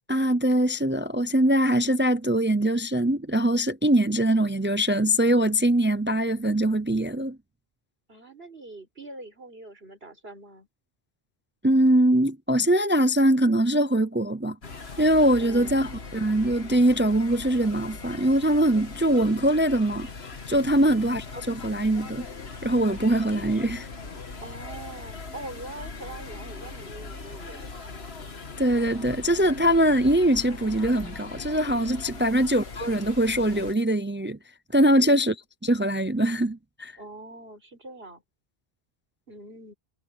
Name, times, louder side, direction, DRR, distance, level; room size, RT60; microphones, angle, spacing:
voice 1, 0.1-7.4 11.6-14.6 15.0-20.1 20.5-22.3 22.6-23.9 28.6-34.4 34.7-35.3 35.6-37.0, right 1 dB, 15° right, 0.5 m, -22 dB
voice 2, 8.1-10.7 15.4-15.8 20.7-21.0 24.4-27.7 32.2-32.4 34.9-35.3 37.0-38.2 39.3-39.7, right 2 dB, 70° right, 5.1 m, -43 dB
sound 1, 14.6-33.7, left 4 dB, 75° left, 2.0 m, -40 dB
omnidirectional pair, 1.1 m